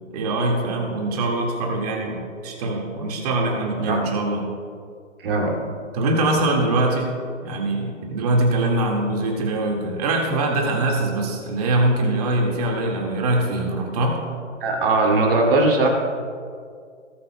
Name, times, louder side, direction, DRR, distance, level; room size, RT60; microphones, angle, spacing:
voice 1, 0.1-4.5 5.9-7.1 7.4-14.2, right 2 dB, 30° right, 1 dB, 1.8 m, -23 dB
voice 2, 5.2-5.6 14.6-15.9, right 2 dB, 50° right, 0 dB, 2.5 m, -19 dB
19.0 x 8.3 x 2.2 m, 2.2 s
hypercardioid pair, 145°, 37 cm